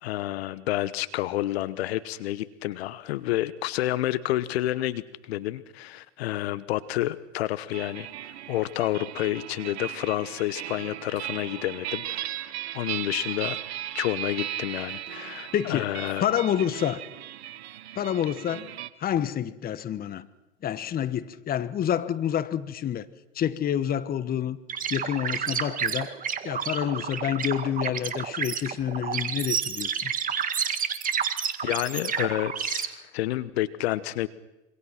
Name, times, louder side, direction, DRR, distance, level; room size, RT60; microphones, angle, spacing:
voice 1, 0.0-8.1 8.5-12.5 12.7-13.6 13.9-16.2 31.6-34.3, left 15 dB, 60° left, 15 dB, 1.2 m, -29 dB
sound 1, 7.7-18.9, right 13 dB, 60° right, 1.4 m, -37 dB
voice 2, 15.5-15.9 16.2-17.0 17.9-18.7 19.0-20.3 20.6-23.1 23.3-24.6 24.9-26.1 26.4-30.1, left 10 dB, 25° left, 14 dB, 1.4 m, -28 dB
sound 2, 24.7-32.9, right 7 dB, 25° right, 1.9 m, -30 dB
26.5 x 25.0 x 5.9 m, 0.97 s
hypercardioid pair, 105°, 36 cm